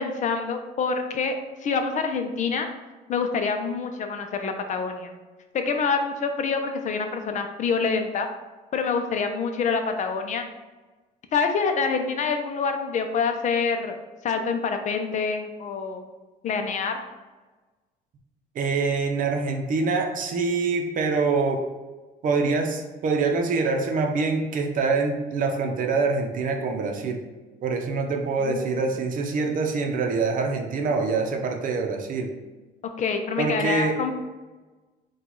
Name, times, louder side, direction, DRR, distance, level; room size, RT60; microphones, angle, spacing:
voice 1, 0.0-1.4 1.6-2.7 3.1-5.1 5.5-8.3 8.7-10.5 11.3-14.0 14.2-16.1 16.4-17.0 28.4-28.9 32.8-34.1, left 5 dB, 45° left, 5 dB, 0.6 m, -26 dB
voice 2, 18.5-21.6 22.2-27.2 27.6-32.3 33.4-34.0, right 4 dB, 55° right, 3 dB, 0.7 m, -25 dB
4.5 x 2.4 x 3.9 m, 1.2 s
cardioid pair, 110°, 17 cm